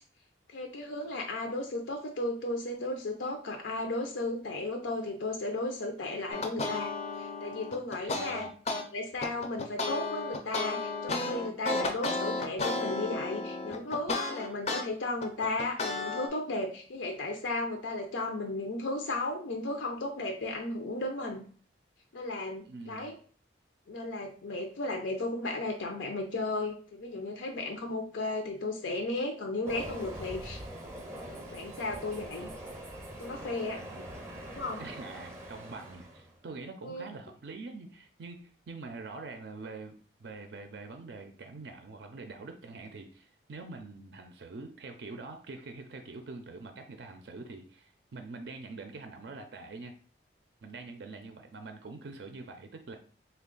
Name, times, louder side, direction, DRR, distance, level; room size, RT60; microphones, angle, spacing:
voice 1, 0.5-8.5 8.9-21.4 22.1-23.2 23.9-30.6 31.5-32.5 33.2-33.8 34.5-34.8 36.8-37.1, left 2 dB, 90° left, 2 dB, 0.5 m, -35 dB
sound 1, 6.3-8.8 9.2-14.8 15.2-16.3, left 3 dB, 35° left, 0.4 m, -33 dB
voice 2, 8.0-8.5 22.6-23.1 33.7-34.2 34.8-49.9 50.6-53.0, right 3 dB, 65° right, 5 dB, 0.4 m, -45 dB
Train, 29.7-36.4, right 1 dB, 15° right, 0.5 m, -43 dB
3.3 x 2.3 x 3.7 m, 0.43 s
head